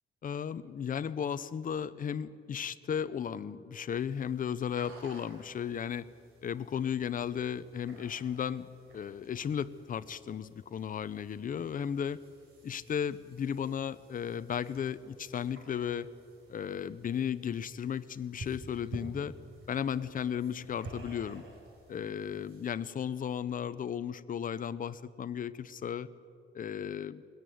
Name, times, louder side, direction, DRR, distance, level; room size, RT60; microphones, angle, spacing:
voice 1, 0.2-6.1 6.4-8.7 8.9-12.2 12.6-16.1 16.5-19.3 19.7-21.4 21.9-26.1 26.5-27.2, left 8 dB, 40° left, 14 dB, 0.6 m, -35 dB
sound 1, 3.9-22.7, right 2 dB, 85° right, 4.9 m, -52 dB
21.0 x 16.5 x 9.3 m, 2.5 s
wide cardioid pair, 170°, 21 cm